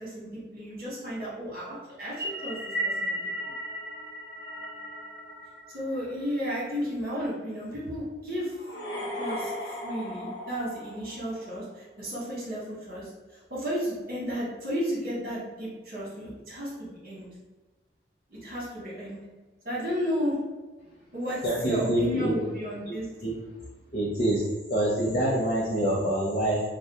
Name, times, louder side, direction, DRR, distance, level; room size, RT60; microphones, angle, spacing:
voice 1, 0.0-2.1 2.4-3.2 5.7-8.5 9.2-13.1 13.5-17.3 18.3-19.2 19.6-20.4 21.1-23.1, equal, 50° right, -7 dB, 1.3 m, -33 dB
sound 1, 2.0-6.5, right 1 dB, 10° right, 0.7 m, -35 dB
sound 2, 8.5-11.6, left 1 dB, 70° left, 0.8 m, -37 dB
voice 2, 21.4-22.3 22.9-23.0 23.2-23.3 23.9-24.4 24.7-26.6, right 1 dB, 45° left, -6 dB, 0.6 m, -25 dB
2.7 x 2.2 x 3.5 m, 1.2 s
head